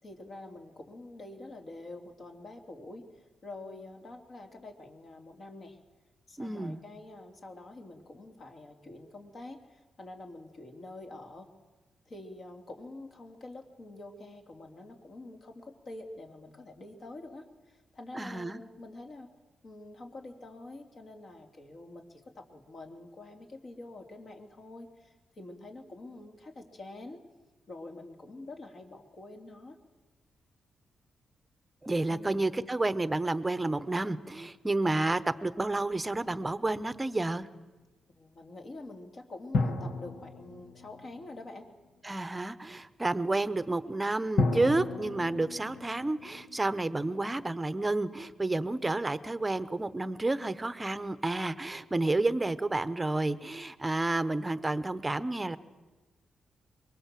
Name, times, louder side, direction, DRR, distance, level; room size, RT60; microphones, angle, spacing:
voice 1, 0.0-5.8 6.3-11.5 12.1-19.3 19.6-27.2 27.7-29.8 32.1-32.4 38.1-41.7, left 2 dB, 45° left, 4 dB, 3.0 m, -46 dB
voice 2, 6.4-6.8 18.2-18.6 31.8-37.5 42.0-55.6, right 2 dB, 15° right, 14 dB, 1.0 m, -30 dB
sound 1, 36.8-37.8 39.5-41.9 44.4-47.4, left 3 dB, 65° left, 2.0 m, -34 dB
24.5 x 22.5 x 7.7 m, 1.2 s
cardioid pair, 120°, 0 cm